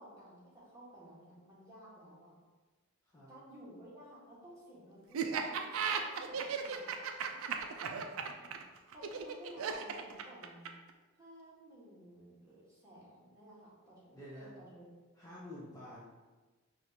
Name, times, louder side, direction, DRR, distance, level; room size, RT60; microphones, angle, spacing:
voice 1, 0.0-2.3 3.3-6.9 7.3-8.6 8.9-10.7 11.2-14.9, right 1 dB, 15° right, -9 dB, 1.2 m, -55 dB
voice 2, 3.0-3.3 14.1-14.5 15.1-16.1, left 1 dB, 15° left, -8 dB, 0.5 m, -49 dB
Laughter, 5.1-10.9, right 7 dB, 70° right, 0.3 m, -36 dB
4.9 x 2.4 x 2.7 m, 1.3 s
head